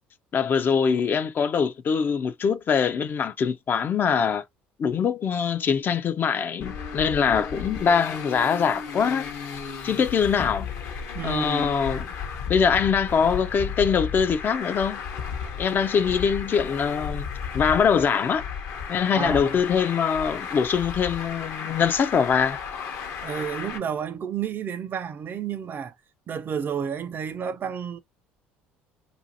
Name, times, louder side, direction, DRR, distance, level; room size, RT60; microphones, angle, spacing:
voice 1, 0.3-4.4 4.8-9.3 9.8-10.7 11.2-12.1 12.5-15.0 15.6-17.3 17.5-18.4 18.9-22.6, left 6 dB, 40° left, 0.3 m, -23 dB
Traffic noise roadway noise, 6.6-23.8, left 6 dB, 65° left, 0.7 m, -34 dB
voice 2, 11.1-11.8 19.1-19.5 23.2-25.9 26.3-28.0, right 7 dB, 40° right, 0.4 m, -31 dB
2.5 x 2.5 x 2.6 m
hypercardioid pair, 70°, 5 cm